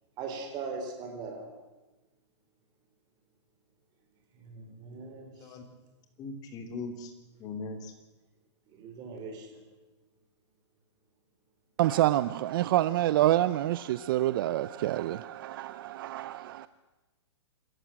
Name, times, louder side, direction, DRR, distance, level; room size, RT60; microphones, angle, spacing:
voice 1, 0.2-1.4 4.5-5.3 8.7-9.5, right 4 dB, 25° right, 4.4 m, -39 dB
voice 2, 6.2-7.1 7.4-7.9, left 3 dB, 25° left, 3.0 m, -39 dB
voice 3, 11.8-16.7, right 14 dB, 50° right, 0.6 m, -27 dB
26.5 x 14.5 x 7.6 m
hypercardioid pair, 150°, 15 cm